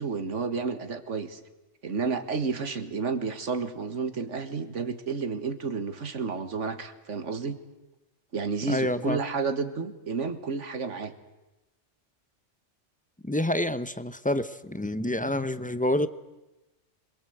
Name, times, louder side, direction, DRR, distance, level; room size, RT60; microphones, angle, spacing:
voice 1, 0.0-1.4 1.8-7.6 8.3-11.1, right 4 dB, 75° right, 9 dB, 2.0 m, -31 dB
voice 2, 8.7-9.2 13.2-16.1, left 1 dB, 10° left, 12 dB, 0.7 m, -28 dB
27.0 x 22.0 x 7.9 m, 1.1 s
omnidirectional pair, 1.2 m